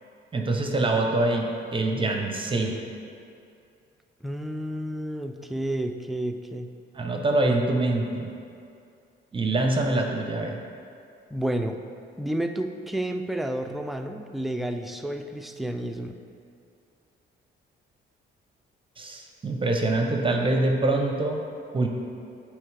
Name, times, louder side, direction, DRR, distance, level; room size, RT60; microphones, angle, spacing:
voice 1, 0.3-2.8 6.9-8.3 9.3-10.6 19.0-21.4 21.7-21.9, right 2 dB, 25° right, 2 dB, 0.7 m, -25 dB
voice 2, 4.2-6.7 11.3-11.8 12.2-16.2, right 1 dB, ahead, 5 dB, 0.3 m, -30 dB
9.1 x 3.2 x 3.3 m, 2.5 s
cardioid pair, 90°, 20 cm